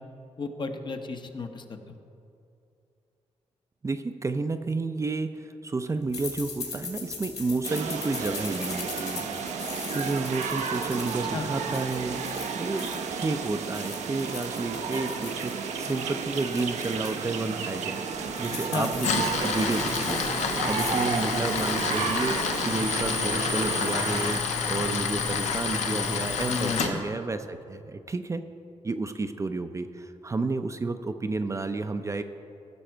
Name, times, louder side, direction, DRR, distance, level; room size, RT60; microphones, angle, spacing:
voice 1, 0.4-1.8 11.3-11.5 18.7-18.9 26.5-27.0, left 4 dB, 40° left, 6 dB, 0.8 m, -33 dB
voice 2, 3.8-9.3 9.9-12.2 12.6-20.2 20.6-28.4 28.8-32.2, right 3 dB, 25° right, 8 dB, 0.5 m, -31 dB
sound 1, 6.1-13.3 13.6-17.2 17.6-17.7 18.0-20.4 20.7-21.1 21.4-21.8, left 5 dB, 65° left, 2.5 m, -40 dB
sound 2, 7.6-24.4, right 6 dB, 80° right, 0.8 m, -32 dB
Tools, 18.9-26.9, left 5 dB, 80° left, 0.9 m, -28 dB
15.0 x 6.2 x 4.5 m, 2.6 s
cardioid pair, 80°, 12 cm